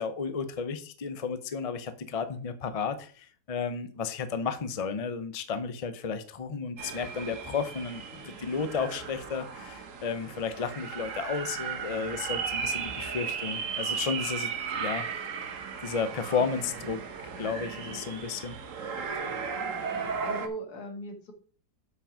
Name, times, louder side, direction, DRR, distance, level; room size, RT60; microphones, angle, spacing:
voice 1, 0.0-15.1 15.8-17.0 17.4-18.6, left 5 dB, 50° left, 11 dB, 0.4 m, -33 dB
sound 1, 6.8-20.5, right 6 dB, 55° right, 1.3 m, -35 dB
voice 2, 19.6-21.3, right 1 dB, 65° left, 5 dB, 2.2 m, -40 dB
7.7 x 6.1 x 4.9 m, 0.42 s
omnidirectional pair, 1.8 m